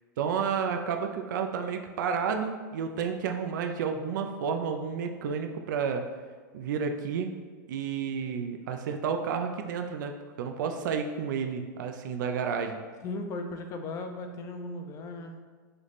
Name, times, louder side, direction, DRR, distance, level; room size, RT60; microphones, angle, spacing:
voice 1, 0.2-6.0 6.5-7.3 7.7-10.1 10.4-12.8, right 6 dB, 75° right, 5 dB, 0.4 m, -31 dB
voice 2, 13.0-15.4, left 2 dB, 30° left, 5 dB, 0.5 m, -37 dB
3.3 x 3.0 x 4.0 m, 1.5 s
hypercardioid pair, 125°, 10 cm